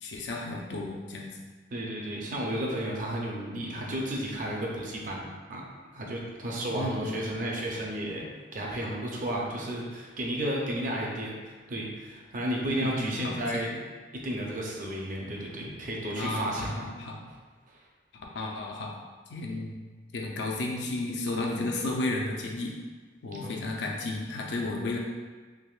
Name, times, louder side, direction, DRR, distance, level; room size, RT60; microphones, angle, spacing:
voice 1, 0.0-1.3 3.5-3.9 6.7-7.4 12.7-13.6 16.2-17.2 18.3-18.9 19.3-19.8 20.1-22.7 23.2-25.0, left 2 dB, 80° left, -1 dB, 0.5 m, -33 dB
voice 2, 1.7-5.2 5.5-5.6 5.9-8.2 8.5-13.9 14.2-16.9 23.3-23.6, right 1 dB, 50° right, -2 dB, 0.5 m, -33 dB
3.4 x 2.9 x 2.4 m, 1.4 s
head